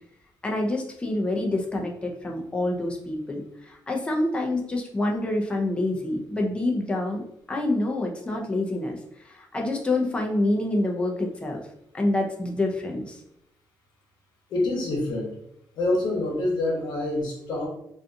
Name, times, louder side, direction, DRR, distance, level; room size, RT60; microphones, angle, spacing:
voice 1, 0.4-7.2 7.5-9.0 9.2-11.6 11.9-13.2, left 2 dB, 15° left, 0 dB, 0.5 m, -27 dB
voice 2, 14.5-15.3 15.8-17.7, left 2 dB, 75° left, -1 dB, 0.9 m, -26 dB
2.5 x 2.3 x 2.6 m, 0.77 s
cardioid pair, 110°, 8 cm